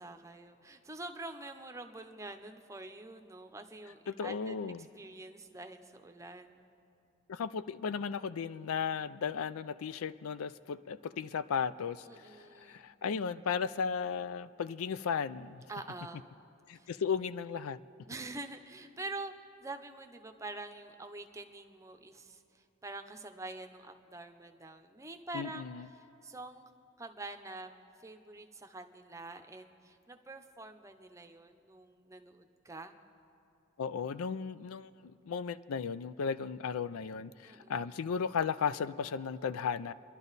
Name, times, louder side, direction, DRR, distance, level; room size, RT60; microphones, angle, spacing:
voice 1, 0.0-4.6 5.0-6.7 12.1-12.9 15.7-16.3 16.7-16.9 18.1-19.3 19.6-26.6 27.0-27.7 28.0-33.0 37.4-37.9, right 2 dB, 15° right, 6 dB, 0.6 m, -46 dB
voice 2, 4.1-4.9 7.3-15.6 16.7-17.8 25.3-25.9 33.8-39.9, left 6 dB, 85° left, 15 dB, 0.4 m, -35 dB
28.5 x 11.5 x 4.0 m, 2.6 s
head